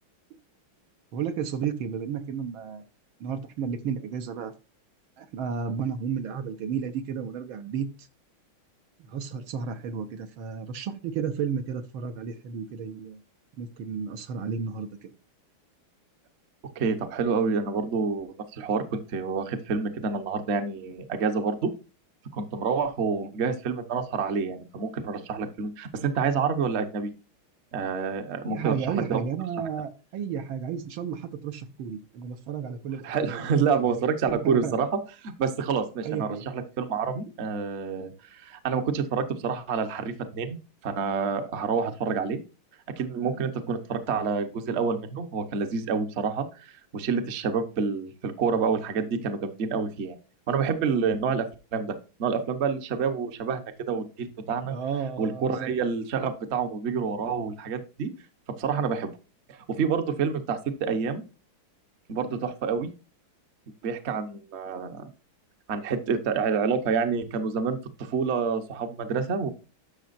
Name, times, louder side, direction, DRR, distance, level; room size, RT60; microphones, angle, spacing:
voice 1, 1.1-2.8 3.2-4.5 5.2-7.9 9.0-13.2 13.6-15.1 28.4-33.4 34.3-34.7 36.1-36.5 54.7-55.7, right 7 dB, 75° right, 1.8 m, -32 dB
voice 2, 16.8-21.7 22.3-27.1 27.7-28.8 29.1-29.2 33.0-34.9 35.2-40.6 40.8-42.4 43.0-50.2 50.5-51.5 51.7-51.9 52.2-54.8 55.2-58.1 58.6-59.1 59.5-61.2 62.1-62.9 63.8-65.1 65.7-69.5, right 5 dB, 45° right, 1.0 m, -28 dB
11.5 x 6.3 x 2.5 m
omnidirectional pair, 2.3 m